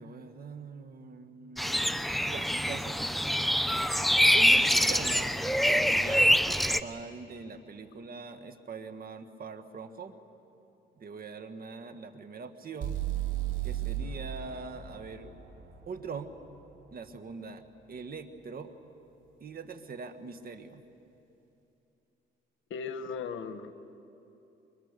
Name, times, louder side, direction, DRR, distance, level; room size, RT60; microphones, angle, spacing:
voice 1, 0.0-3.0 4.3-5.4 5.6-10.2 11.0-13.0 13.6-15.4 15.9-16.3 16.9-18.7 19.4-20.8, right 4 dB, 50° right, 8 dB, 1.7 m, -42 dB
sound 1, 1.6-6.8, equal, ahead, 0.7 m, -25 dB
sound 2, 12.8-16.7, right 11 dB, 70° right, 2.9 m, -35 dB
voice 2, 22.7-23.7, left 5 dB, 75° left, 10 dB, 1.3 m, -37 dB
28.0 x 23.0 x 6.8 m, 2.9 s
cardioid pair, 90°, 20 cm